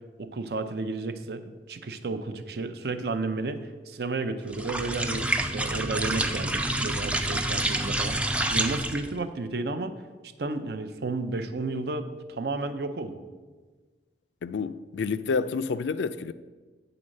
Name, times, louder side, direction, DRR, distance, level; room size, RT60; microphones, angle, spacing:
voice 1, 0.2-8.2 8.5-9.9 10.2-13.2, right 3 dB, 65° right, 0.6 m, -32 dB
sound 1, 4.5-9.2, right 1 dB, 5° right, 0.3 m, -28 dB
voice 2, 14.4-16.3, left 5 dB, 85° left, 0.4 m, -29 dB
8.7 x 3.9 x 6.4 m
head